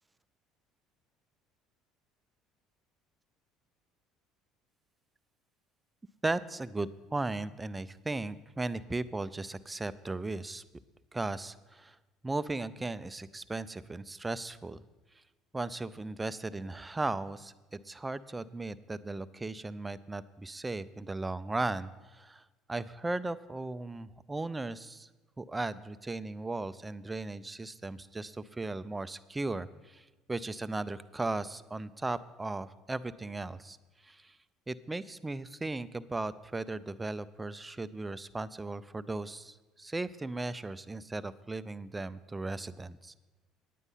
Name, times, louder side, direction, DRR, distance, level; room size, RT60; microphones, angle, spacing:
voice 1, 6.2-10.6 11.1-12.0 12.2-14.8 15.5-22.4 22.7-25.1 25.4-33.8 34.0-34.4 34.7-43.2, right 2 dB, 15° right, 15 dB, 0.5 m, -37 dB
9.6 x 9.2 x 5.6 m, 1.2 s
supercardioid pair, 80°, 0 cm